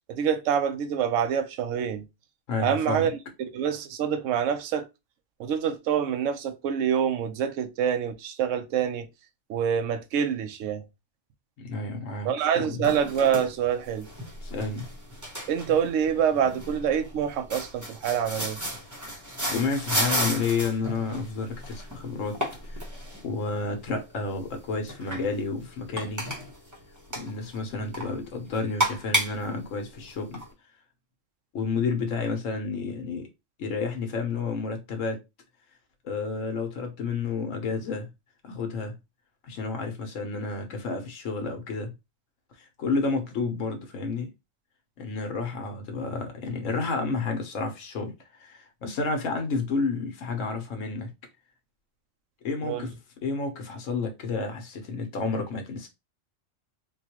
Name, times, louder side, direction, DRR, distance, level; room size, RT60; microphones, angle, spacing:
voice 1, 0.1-2.1 2.6-3.1 3.4-4.9 5.4-9.1 9.5-10.8 12.2-14.1 15.5-18.6 52.6-52.9, right 8 dB, 80° right, 0.9 m, -26 dB
voice 2, 2.5-3.1 11.6-12.9 14.4-14.9 19.1-19.2 19.5-22.4 22.7-22.8 23.2-26.3 27.1-30.4 31.5-33.3 33.6-35.2 36.0-38.1 38.4-38.9 39.4-41.9 42.8-44.3 45.0-48.1 48.4-51.1 52.4-53.0 53.2-55.9, left 4 dB, 85° left, 1.2 m, -30 dB
sound 1, 12.8-30.5, right 1 dB, 15° right, 0.8 m, -34 dB
4.0 x 2.3 x 2.9 m
omnidirectional pair, 1.3 m